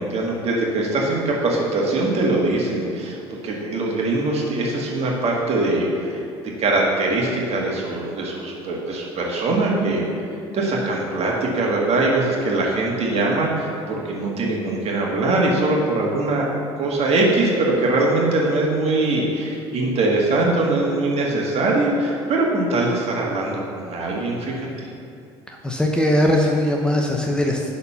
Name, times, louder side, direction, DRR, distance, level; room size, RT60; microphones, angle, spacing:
voice 1, 0.0-3.2 3.4-6.2 6.6-10.0 10.5-16.5 16.8-24.9, right 2 dB, 45° right, -2 dB, 2.1 m, -22 dB
voice 2, 25.6-27.7, left 1 dB, 5° left, 0 dB, 1.0 m, -20 dB
11.0 x 4.2 x 5.8 m, 2.5 s
hypercardioid pair, 60°, 14 cm